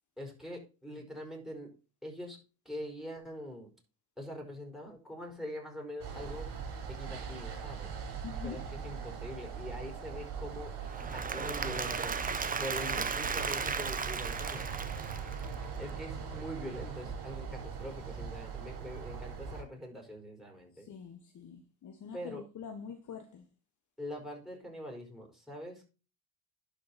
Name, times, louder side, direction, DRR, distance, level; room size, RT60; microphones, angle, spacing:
voice 1, 0.2-1.7 2.0-2.4 2.6-3.7 4.2-6.5 6.9-7.9 8.4-10.7 11.1-12.1 12.6-14.7 15.8-20.8 22.1-22.4 24.0-25.9, equal, ahead, 5.0 m, -43 dB
sound 1, 6.0-19.6, right 6 dB, 55° right, 3.5 m, -41 dB
voice 2, 8.2-8.6 20.7-23.5, left 7 dB, 35° left, 1.3 m, -45 dB
Applause / Crowd, 10.8-15.8, right 5 dB, 15° right, 0.8 m, -35 dB
11.5 x 5.1 x 4.3 m
hypercardioid pair, 80°, 48 cm